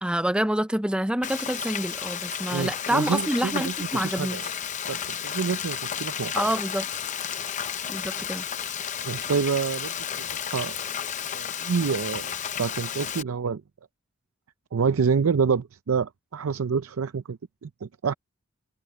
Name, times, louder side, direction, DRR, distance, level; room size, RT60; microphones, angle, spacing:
voice 1, 0.0-4.5 6.3-6.9 7.9-8.5, right 1 dB, 5° right, 0.5 m, -27 dB
Frying (food), 1.2-13.2, left 8 dB, 35° left, 0.7 m, -32 dB
voice 2, 2.5-3.7 4.0-4.4 4.9-6.4 9.0-9.9 10.5-10.8 11.3-13.6 14.7-18.1, right 5 dB, 80° right, 0.5 m, -27 dB
head